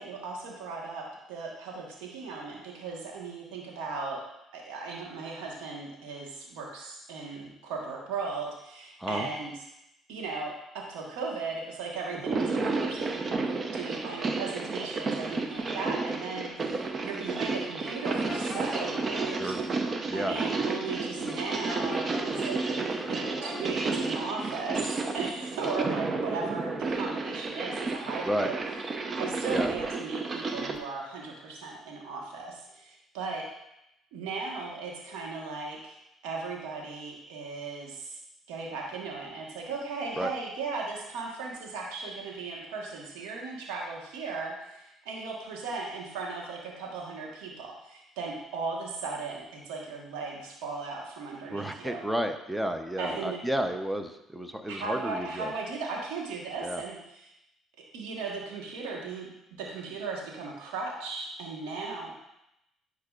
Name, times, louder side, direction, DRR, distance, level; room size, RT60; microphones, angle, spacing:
voice 1, 0.0-4.2 4.5-9.5 10.1-19.6 20.1-28.6 29.1-33.5 34.1-36.0 36.2-38.2 38.5-52.0 53.0-53.4 54.7-57.3 57.9-59.3 59.6-62.1, right 4 dB, 90° right, -1 dB, 1.4 m, -37 dB
sound 1, 12.1-30.8, right 3 dB, 45° right, 0.7 m, -32 dB
sound 2, 17.8-19.2 21.3-22.7 23.0-23.7, left 2 dB, 30° left, 1.3 m, -41 dB
voice 2, 19.2-19.6 20.1-20.4 28.3-28.5 29.5-29.7 40.2-40.3 51.5-55.5 56.6-56.8, equal, 5° right, 7 dB, 0.7 m, -31 dB
10.0 x 4.7 x 2.5 m, 0.84 s
supercardioid pair, 75°, 0 cm